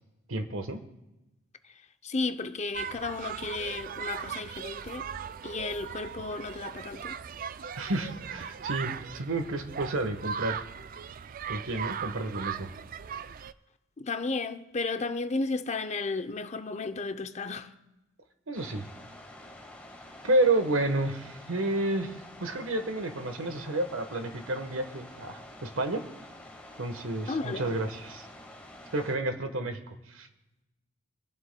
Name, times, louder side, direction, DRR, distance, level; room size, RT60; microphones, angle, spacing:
voice 1, 0.3-0.8 7.8-10.6 11.5-12.7 18.5-18.8 20.2-22.1 22.4-26.0 26.8-28.3 28.9-30.3, right 2 dB, 75° right, 1.3 m, -30 dB
voice 2, 2.0-5.0 5.4-7.2 14.0-17.7 27.3-27.7, left 3 dB, 30° left, 0.6 m, -33 dB
sound 1, 2.7-13.5, right 7 dB, 40° right, 0.3 m, -38 dB
sound 2, 18.5-29.1, left 1 dB, 5° left, 1.5 m, -48 dB
26.5 x 11.5 x 2.2 m
head